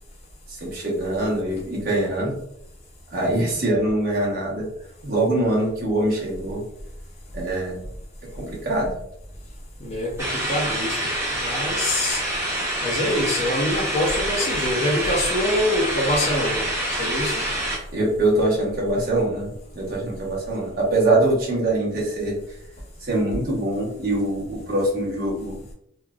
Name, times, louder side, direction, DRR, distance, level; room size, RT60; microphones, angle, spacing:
voice 1, 0.5-2.4 3.1-4.7 5.0-6.6 7.3-7.8 8.3-8.9 17.9-22.4 23.0-25.5, right 1 dB, 50° right, -4 dB, 1.0 m, -23 dB
voice 2, 9.8-12.2 12.8-17.4, left 1 dB, 35° left, -2 dB, 0.5 m, -25 dB
sound 1, 10.2-17.8, right 1 dB, 15° right, 0.7 m, -26 dB
3.1 x 2.3 x 2.3 m, 0.76 s
head